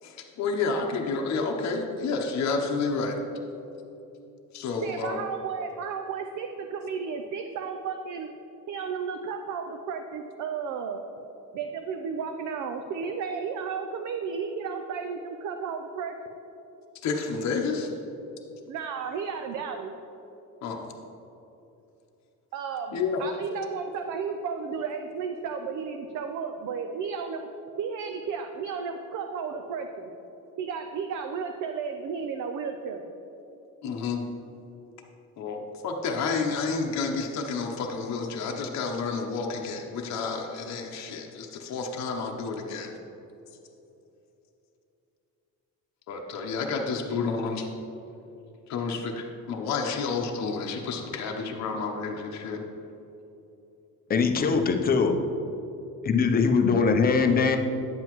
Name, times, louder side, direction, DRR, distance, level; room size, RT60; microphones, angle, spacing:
voice 1, 0.0-3.2 4.5-5.2 17.0-17.9 20.6-20.9 22.9-23.2 33.8-34.2 35.4-42.9 46.1-47.7 48.7-52.6, left 4 dB, 55° left, 1 dB, 0.8 m, -30 dB
voice 2, 4.8-8.3 8.7-11.0 11.5-16.2 18.7-19.9 22.5-27.5 27.8-30.1 30.6-33.1, right 6 dB, 60° right, 5 dB, 0.5 m, -33 dB
voice 3, 54.1-55.2 56.0-57.6, left 5 dB, 30° left, 5 dB, 0.6 m, -22 dB
9.4 x 7.7 x 3.1 m, 3.0 s
cardioid pair, 140°, 33 cm